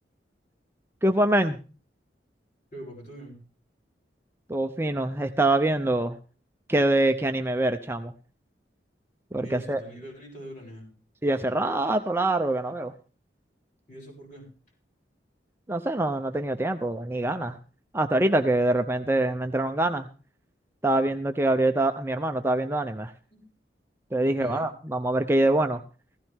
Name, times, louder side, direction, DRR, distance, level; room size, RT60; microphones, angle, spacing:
voice 1, 1.0-1.6 4.5-6.2 6.7-8.1 9.3-9.8 11.2-12.9 15.7-17.6 17.9-20.1 20.8-23.1 24.1-25.8, right 1 dB, 15° right, 6 dB, 0.6 m, -24 dB
voice 2, 2.7-3.4 9.4-10.9 13.9-14.5 23.3-23.4 24.2-24.7, equal, 45° left, -1 dB, 7.7 m, -43 dB
16.0 x 15.0 x 3.6 m, 0.35 s
head